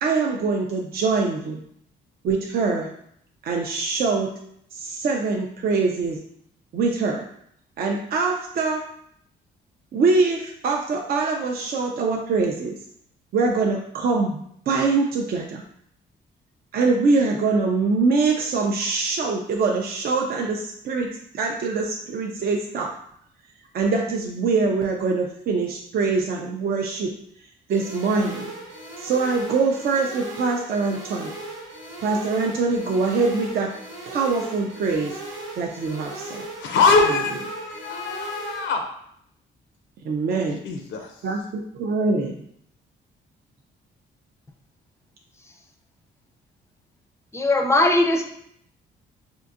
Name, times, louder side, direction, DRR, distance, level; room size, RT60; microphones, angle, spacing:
voice 1, 0.0-1.6 2.2-2.9 3.4-4.3 4.7-6.2 6.7-7.2 7.8-8.8 9.9-12.7 13.3-15.6 16.7-21.1 21.3-22.9 23.7-27.1 27.7-28.5 29.0-31.3 32.0-33.7 34.1-35.2 35.6-36.4 37.1-37.2 40.0-40.6 41.2-42.4, right 4 dB, 50° right, 1 dB, 0.4 m, -23 dB
sound 1, 27.7-38.7, right 2 dB, 85° right, 1.0 m, -38 dB
voice 2, 36.6-38.8 40.6-41.1, left 4 dB, 70° left, 3 dB, 0.5 m, -22 dB
voice 3, 47.3-48.2, left 2 dB, 15° left, 4 dB, 0.5 m, -19 dB
3.7 x 2.5 x 2.4 m, 0.70 s
cardioid pair, 90°, 20 cm